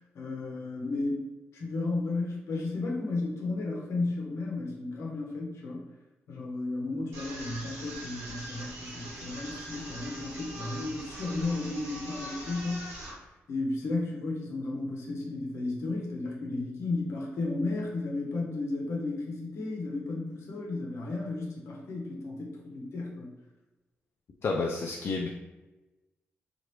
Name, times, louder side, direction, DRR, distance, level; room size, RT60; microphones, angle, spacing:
voice 1, 0.1-1.2 1.5-5.9 6.3-13.0 13.5-23.3, left 2 dB, 70° left, -1 dB, 0.8 m, -33 dB
sound 1, 7.1-13.1, right 1 dB, 85° right, 0.9 m, -42 dB
voice 2, 24.4-25.3, left 3 dB, 55° left, 0 dB, 0.3 m, -30 dB
2.9 x 2.5 x 3.1 m, 1.1 s
supercardioid pair, 55°, 5 cm